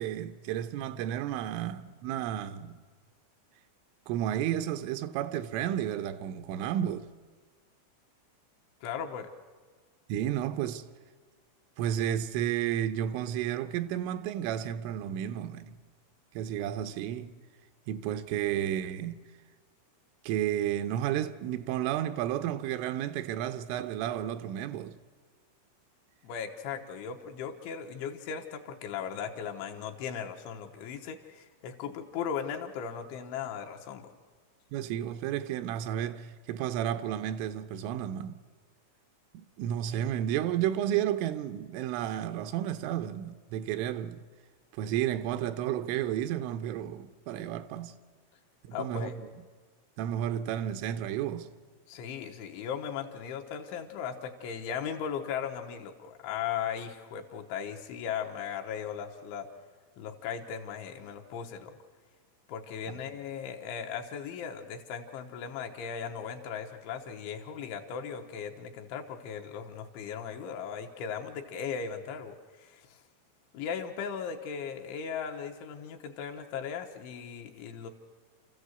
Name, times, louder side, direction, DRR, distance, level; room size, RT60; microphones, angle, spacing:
voice 1, 0.0-2.8 4.1-7.1 10.1-10.8 11.8-15.8 16.4-17.4 17.9-19.2 20.2-25.0 34.7-38.4 39.3-44.2 44.7-47.9 48.6-49.1 50.0-51.5, right 11 dB, 85° right, 3.3 m, -32 dB
voice 2, 8.8-9.3 26.2-34.1 48.7-49.1 51.9-59.5 60.0-61.8 62.5-73.0 73.5-77.9, left 7 dB, 80° left, 3.5 m, -37 dB
29.0 x 14.5 x 8.1 m
omnidirectional pair, 5.5 m